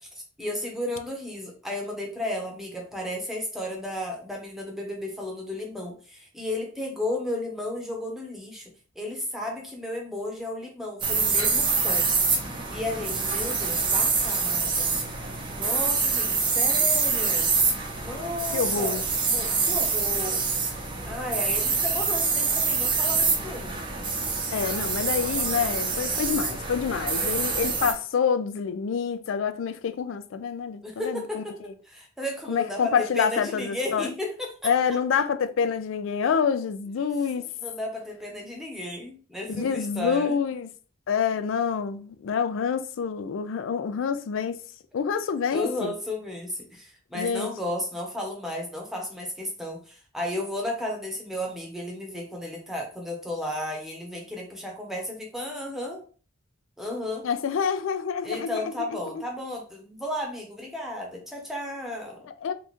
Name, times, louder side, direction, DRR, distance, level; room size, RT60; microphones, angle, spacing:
voice 1, 0.4-12.1 12.7-15.0 15.6-17.5 18.0-20.4 21.1-23.7 30.8-34.7 37.4-40.4 45.5-56.0 56.8-57.3 58.2-62.2, left 1 dB, ahead, 0.9 m, -33 dB
sound 1, 11.0-27.9, right 4 dB, 25° right, 0.6 m, -26 dB
voice 2, 18.5-19.0 24.5-31.4 32.5-34.1 34.6-37.4 39.5-40.7 41.1-44.6 44.9-45.9 47.1-47.5 57.2-58.6 62.3-62.5, left 6 dB, 75° left, 0.4 m, -27 dB
3.1 x 2.3 x 4.1 m
head